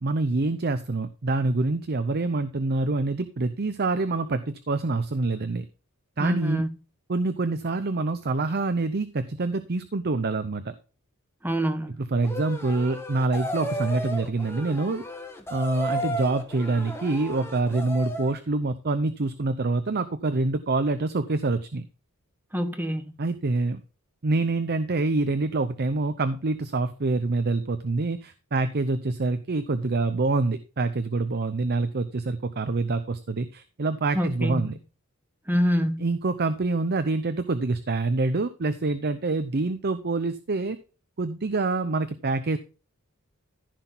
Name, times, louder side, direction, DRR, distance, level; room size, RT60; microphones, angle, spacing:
voice 1, 0.0-5.7 6.2-6.6 7.1-10.7 12.1-15.0 15.5-21.8 23.2-23.8 24.2-34.8 36.0-40.8 41.2-42.6, right 3 dB, 45° right, 0.7 m, -26 dB
voice 2, 6.2-6.7 11.4-12.0 22.5-23.1 34.1-34.7 35.5-36.0, equal, 10° right, 1.4 m, -26 dB
sound 1, 12.2-18.4, equal, 10° left, 1.9 m, -34 dB
14.5 x 6.0 x 3.9 m
head